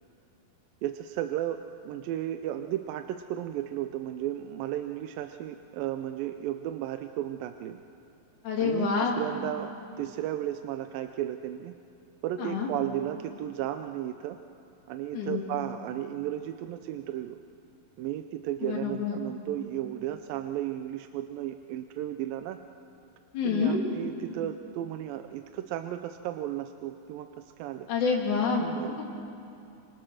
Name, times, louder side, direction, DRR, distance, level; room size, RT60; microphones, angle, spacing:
voice 1, 0.8-1.6 1.8-7.8 8.6-9.7 10.0-11.8 12.2-14.4 14.9-17.4 18.0-22.6 23.4-27.9 28.6-29.1, right 12 dB, 80° right, 8 dB, 2.3 m, -34 dB
voice 2, 8.4-9.2 12.4-12.7 15.1-15.4 18.6-19.2 23.3-23.8 27.9-28.6, left 5 dB, 60° left, -1 dB, 3.9 m, -27 dB
26.5 x 24.0 x 6.4 m, 2.7 s
omnidirectional pair, 4.1 m